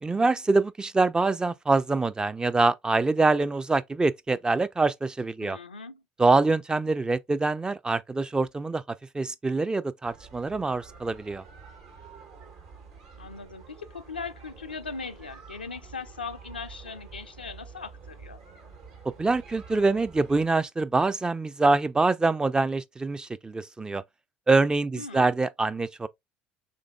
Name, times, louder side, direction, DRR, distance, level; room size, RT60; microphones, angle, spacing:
voice 1, 0.0-5.6 6.2-11.4 19.2-24.0 24.5-26.1, right 3 dB, 15° right, 0.3 m, -25 dB
voice 2, 5.4-6.0 13.2-18.4 24.9-25.3, left 4 dB, 90° left, 0.4 m, -39 dB
sound 1, 10.0-20.5, right 5 dB, 65° right, 1.3 m, -48 dB
5.1 x 3.4 x 2.3 m
figure-of-eight pair, 60°, 5 cm